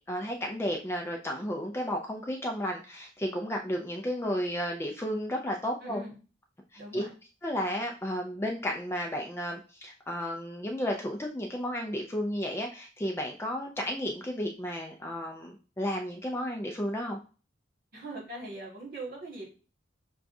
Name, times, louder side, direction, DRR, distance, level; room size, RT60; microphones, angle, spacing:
voice 1, 0.1-6.0 6.9-7.1 7.4-17.2, equal, 15° left, 1 dB, 0.4 m, -33 dB
voice 2, 5.8-6.2 6.7-7.1 17.9-19.5, right 2 dB, 45° right, -2 dB, 1.6 m, -41 dB
5.9 x 2.3 x 2.6 m, 0.35 s
head